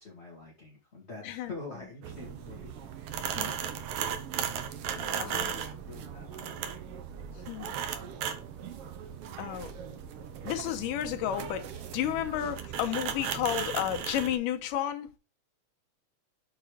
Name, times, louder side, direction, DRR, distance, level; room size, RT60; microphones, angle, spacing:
voice 1, 0.0-3.2 4.8-6.8, left 3 dB, 30° left, 1.4 m, -46 dB
sound 1, 2.0-14.4, right 8 dB, 75° right, 1.3 m, -37 dB
sound 2, 4.2-11.3, right 4 dB, 20° right, 2.4 m, -64 dB
voice 2, 5.2-5.5 7.5-7.7 9.4-9.7 10.4-11.7 11.9-15.1, left 11 dB, 85° left, 2.3 m, -32 dB
6.6 x 4.0 x 4.7 m
omnidirectional pair, 3.7 m